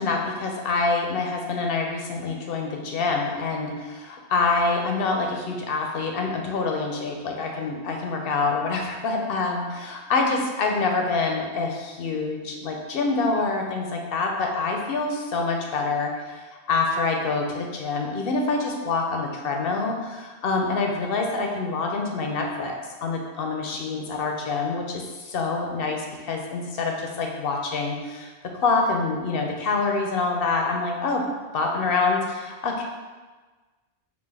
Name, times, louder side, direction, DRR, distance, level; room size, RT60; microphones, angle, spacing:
voice 1, 0.0-31.2 31.5-32.8, left 3 dB, 65° left, 1 dB, 0.7 m, -26 dB
5.4 x 2.4 x 3.3 m, 1.3 s
omnidirectional pair, 1.1 m